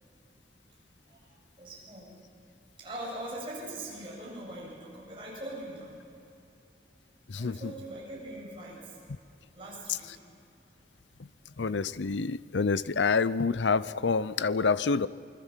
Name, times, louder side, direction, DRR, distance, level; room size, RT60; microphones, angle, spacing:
voice 1, 1.1-2.2 2.8-6.0 7.3-9.0 9.5-10.2, right 1 dB, 30° right, -4 dB, 7.8 m, -42 dB
voice 2, 11.6-15.1, left 4 dB, 85° left, 17 dB, 0.6 m, -27 dB
28.0 x 21.0 x 7.5 m, 2.7 s
head